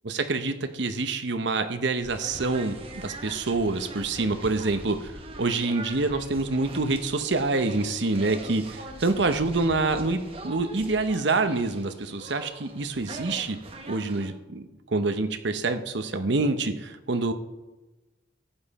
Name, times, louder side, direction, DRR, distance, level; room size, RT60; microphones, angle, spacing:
voice 1, 0.0-13.6 13.9-17.3, right 3 dB, 70° right, 8 dB, 0.9 m, -26 dB
sound 1, 2.0-14.3, right 2 dB, 30° right, 1.3 m, -42 dB
14.0 x 9.2 x 4.2 m, 1.1 s
head